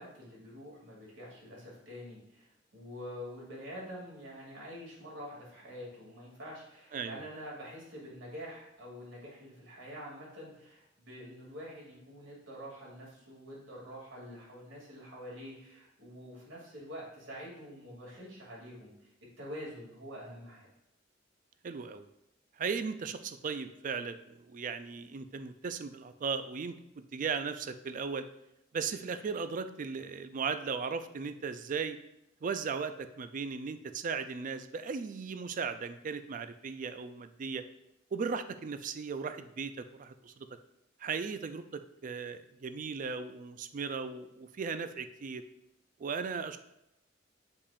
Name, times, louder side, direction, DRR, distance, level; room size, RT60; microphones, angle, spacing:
voice 1, 0.0-19.1 19.4-20.7, equal, 90° right, -4 dB, 2.5 m, -46 dB
voice 2, 21.6-22.1 22.6-28.3 28.7-32.0 32.4-37.6 38.1-40.5 41.0-45.4 46.0-46.6, right 5 dB, 45° right, 10 dB, 0.4 m, -37 dB
8.5 x 5.3 x 2.4 m, 0.85 s
head